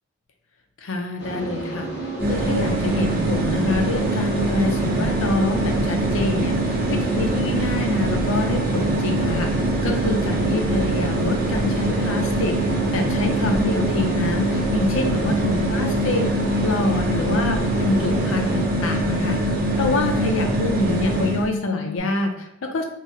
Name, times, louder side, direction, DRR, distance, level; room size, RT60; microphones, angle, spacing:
voice 1, 0.8-1.9 2.3-9.5 9.8-12.6 12.9-16.3 16.6-22.8, left 2 dB, 90° left, 3 dB, 0.5 m, -26 dB
sound 1, 1.2-18.6, right 2 dB, 60° left, 1.1 m, -31 dB
sound 2, 2.2-21.5, right 2 dB, 50° right, 0.7 m, -23 dB
sound 3, 11.5-22.0, left 6 dB, 25° left, 0.7 m, -33 dB
2.7 x 2.1 x 3.8 m, 0.84 s
head